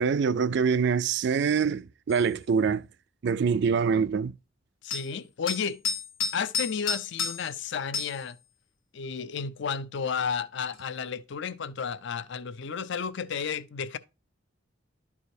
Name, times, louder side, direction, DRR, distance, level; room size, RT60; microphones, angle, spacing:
voice 1, 0.0-2.9 3.2-4.3, right 6 dB, 60° right, 0.4 m, -25 dB
sound 1, 2.1-2.3 4.9-5.1 5.5-7.6 7.9-8.2 10.7-10.8, left 5 dB, 90° left, 1.2 m, -31 dB
voice 2, 4.8-5.8 6.3-8.4 8.9-14.0, left 6 dB, 60° left, 0.5 m, -32 dB
12.0 x 4.8 x 2.7 m
head